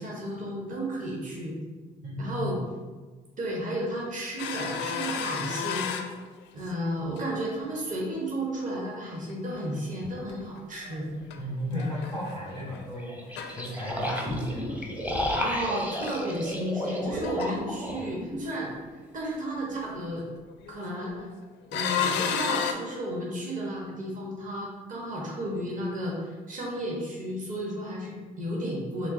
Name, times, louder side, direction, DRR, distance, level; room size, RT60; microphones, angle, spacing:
voice 1, 0.0-1.6 2.2-2.6 3.4-6.0 6.5-11.1 15.4-20.3 20.7-21.2 21.7-29.1, right 1 dB, 40° right, -3 dB, 1.1 m, -33 dB
voice 2, 2.0-2.5 11.3-14.8, left 1 dB, 85° right, -9 dB, 1.5 m, -34 dB
sound 1, 4.4-6.9 7.2-7.8 8.1-8.3 10.3-11.4 11.8-12.8 13.3-14.3 15.2-15.3 15.8-15.9 16.0-16.2 16.5-17.0 17.2-17.7 20.5-21.3 21.7-22.7, left 7 dB, 60° left, 0.4 m, -32 dB
sound 2, 10.0-10.1 12.9-18.5, equal, 5° right, 0.7 m, -32 dB
5.8 x 2.1 x 2.6 m, 1.3 s
hypercardioid pair, 55°, 21 cm